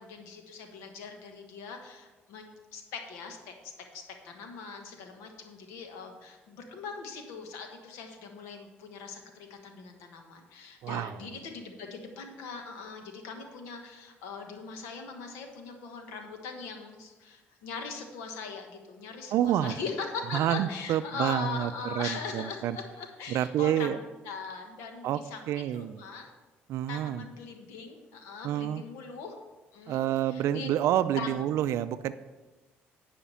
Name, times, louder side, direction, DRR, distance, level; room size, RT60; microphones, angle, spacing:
voice 1, 0.0-25.4 25.7-26.3 26.9-29.4 29.7-30.7 31.2-31.4, left 5 dB, 90° left, 4 dB, 1.3 m, -41 dB
voice 2, 10.8-11.4 19.3-19.7 20.3-22.8 23.3-24.0 25.0-25.2 25.5-26.0 26.7-27.3 28.4-28.8 29.9-32.1, right 11 dB, 70° right, 12 dB, 0.3 m, -28 dB
10.0 x 5.0 x 5.6 m, 1.2 s
supercardioid pair, 75°, 5 cm